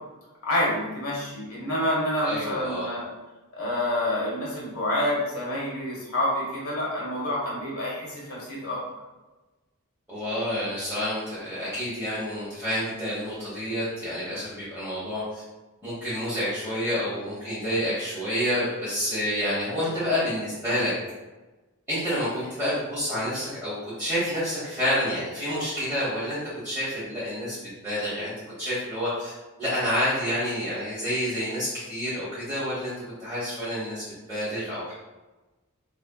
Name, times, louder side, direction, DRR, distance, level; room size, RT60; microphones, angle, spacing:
voice 1, 0.4-3.0 3.5-8.8, left 1 dB, 75° left, -5 dB, 1.4 m, -28 dB
voice 2, 2.2-2.9 10.1-15.4 15.8-20.9 21.9-26.4 26.6-27.6 27.8-28.3 28.6-29.3 29.6-32.9 33.2-34.0 34.3-34.9, equal, 10° right, -11 dB, 1.0 m, -28 dB
4.2 x 3.3 x 2.3 m, 1.1 s
head